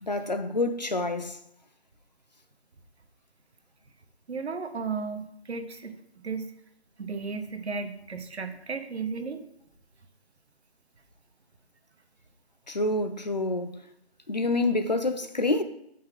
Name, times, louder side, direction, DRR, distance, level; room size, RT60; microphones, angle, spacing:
voice 1, 0.0-1.4 12.7-13.7 14.3-15.6, left 2 dB, 40° left, 0.5 m, -27 dB
voice 2, 4.3-6.0 6.2-6.5 7.0-9.4, right 4 dB, 80° right, 1.1 m, -34 dB
7.7 x 5.6 x 3.9 m
figure-of-eight pair, 175°, 32 cm